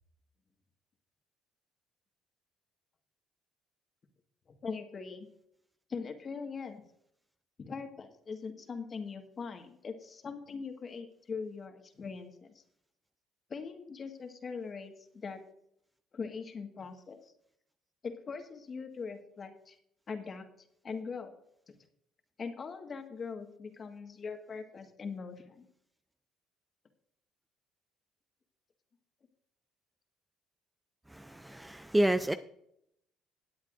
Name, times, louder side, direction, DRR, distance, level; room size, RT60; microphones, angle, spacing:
voice 1, 4.6-5.3 5.9-6.8 7.6-12.6 13.5-15.4 16.1-17.3 18.0-19.8 20.1-20.5 20.8-21.3 21.7-21.8 22.4-25.7, left 5 dB, 40° left, 5 dB, 1.7 m, -41 dB
voice 2, 31.1-32.3, right 1 dB, 10° right, 11 dB, 0.5 m, -29 dB
19.5 x 8.3 x 2.6 m, 0.75 s
supercardioid pair, 70°, 0 cm